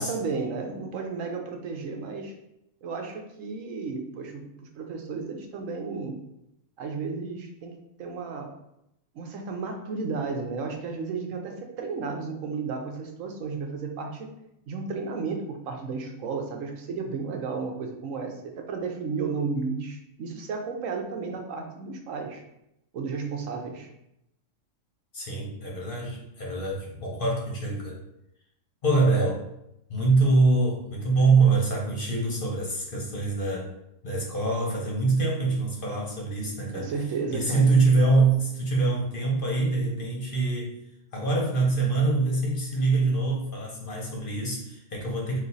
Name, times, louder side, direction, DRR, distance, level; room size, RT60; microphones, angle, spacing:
voice 1, 0.0-2.3 2.8-4.4 4.8-6.1 6.8-7.7 8.0-8.5 9.1-14.3 14.7-22.4 22.9-23.9 31.2-31.3 36.7-37.8, right 4 dB, 80° right, 3 dB, 1.1 m, -33 dB
voice 2, 25.1-28.0 28.8-29.4 29.9-33.7 34.0-36.9 37.3-40.8 41.1-45.4, right 3 dB, 45° left, -2 dB, 0.9 m, -24 dB
4.3 x 2.4 x 4.0 m, 0.83 s
omnidirectional pair, 1.4 m